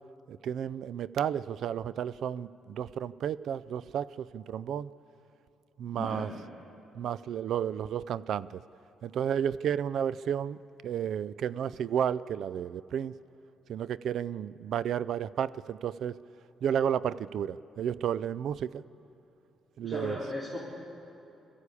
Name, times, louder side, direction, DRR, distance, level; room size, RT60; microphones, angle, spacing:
voice 1, 0.3-4.9 5.8-6.3 7.0-8.6 9.0-13.2 13.7-16.2 16.6-18.8 19.8-20.2, right 9 dB, 70° right, 18 dB, 0.4 m, -32 dB
voice 2, 5.9-6.3 19.8-20.6, left 1 dB, 30° right, -7 dB, 4.0 m, -36 dB
22.0 x 14.5 x 8.4 m, 2.8 s
cardioid pair, 90°, 0 cm